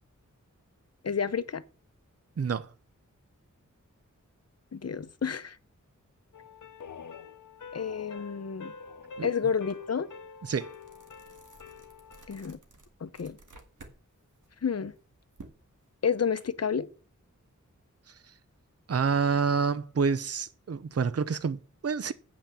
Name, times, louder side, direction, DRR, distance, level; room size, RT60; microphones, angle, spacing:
voice 1, 1.0-1.6 4.7-5.6 7.7-8.7 9.2-10.1 12.3-12.6 13.0-13.4 14.6-14.9 16.0-16.9, left 6 dB, 55° left, 0.7 m, -30 dB
voice 2, 2.4-2.7 9.2-9.3 10.4-10.7 18.9-22.1, right 5 dB, 50° right, 0.7 m, -28 dB
sound 1, 6.3-12.4, left 5 dB, 80° left, 0.8 m, -46 dB
sound 2, 9.7-9.8 10.2-14.0 14.3-16.4, right 3 dB, 85° right, 2.0 m, -53 dB
8.7 x 5.8 x 6.8 m
wide cardioid pair, 95°, 30 cm